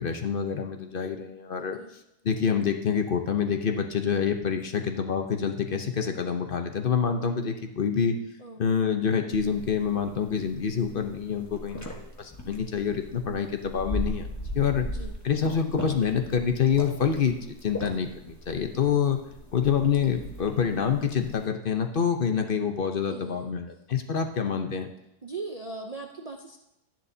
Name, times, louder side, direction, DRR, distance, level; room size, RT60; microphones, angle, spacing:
voice 1, 0.0-1.8 2.2-8.2 8.6-11.9 12.2-14.3 14.5-14.9 15.2-17.4 17.6-19.2 19.5-24.9, left 7 dB, 50° left, 6 dB, 0.7 m, -26 dB
voice 2, 1.6-1.9 8.4-8.6 14.8-15.1 23.1-23.5 25.2-26.6, right 3 dB, 60° right, 1 dB, 0.3 m, -39 dB
sound 1, 9.3-21.4, equal, 10° left, 1.1 m, -39 dB
12.5 x 10.5 x 2.7 m, 0.86 s
omnidirectional pair, 1.7 m